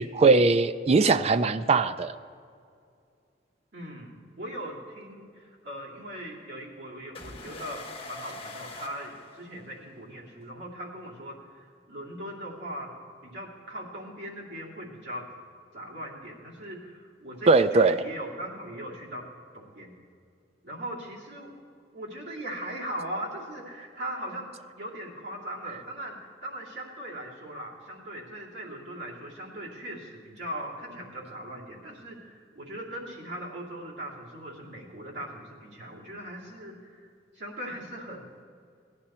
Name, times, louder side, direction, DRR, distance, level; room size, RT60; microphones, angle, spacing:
voice 1, 0.0-2.1 17.5-17.9, right 3 dB, 35° right, 12 dB, 0.4 m, -20 dB
voice 2, 3.7-12.9 13.2-15.3 15.7-19.3 19.5-20.0 20.6-21.5 21.9-24.5 24.8-37.1 37.3-38.3, right 1 dB, 70° right, -4 dB, 2.6 m, -39 dB
sound 1, 7.1-9.9, left 2 dB, 30° left, 1.2 m, -43 dB
17.0 x 10.5 x 4.3 m, 2.3 s
head